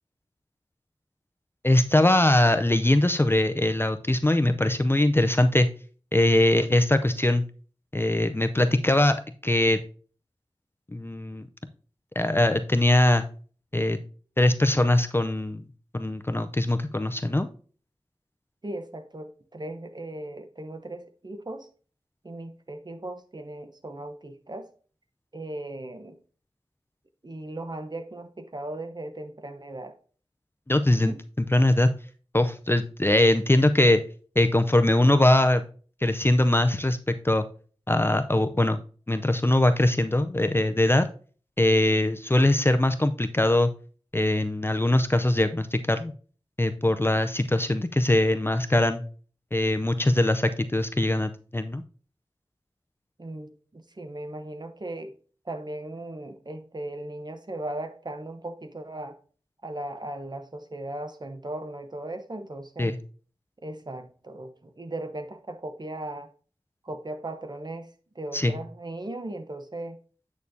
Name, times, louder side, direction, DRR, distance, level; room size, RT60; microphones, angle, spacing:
voice 1, 1.6-5.7 6.1-7.4 7.9-9.8 10.9-11.5 12.2-13.2 13.7-14.0 14.4-15.6 15.9-17.5 30.7-31.9 32.3-34.0 34.4-35.6 36.0-37.0 37.2-37.4 37.9-38.8 39.1-41.1 41.6-43.7 44.1-46.1 46.6-49.0 49.5-51.8 62.8-63.0 68.3-68.6, left 1 dB, 20° left, 0.5 m, -22 dB
voice 2, 18.6-21.7 22.2-24.7 25.3-26.2 27.2-29.9 30.9-31.2 53.2-55.1 55.5-59.2 59.6-62.9 63.6-66.3 66.8-67.9 68.1-70.0, right 1 dB, 40° right, 0.9 m, -37 dB
8.4 x 6.4 x 2.7 m
wide cardioid pair, 50°, 11 cm